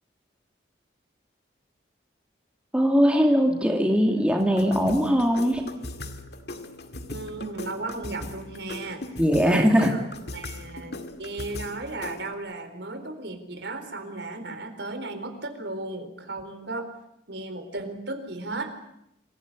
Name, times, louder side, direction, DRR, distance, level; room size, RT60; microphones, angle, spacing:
voice 1, 2.7-5.7 9.2-9.9, equal, 5° right, 2 dB, 2.5 m, -21 dB
sound 1, 4.4-12.3, left 2 dB, 60° left, 2.1 m, -39 dB
voice 2, 7.1-9.0 9.4-10.0 10.3-16.9 17.3-18.7, right 2 dB, 70° right, 7 dB, 4.1 m, -35 dB
26.5 x 16.5 x 9.7 m, 0.80 s
head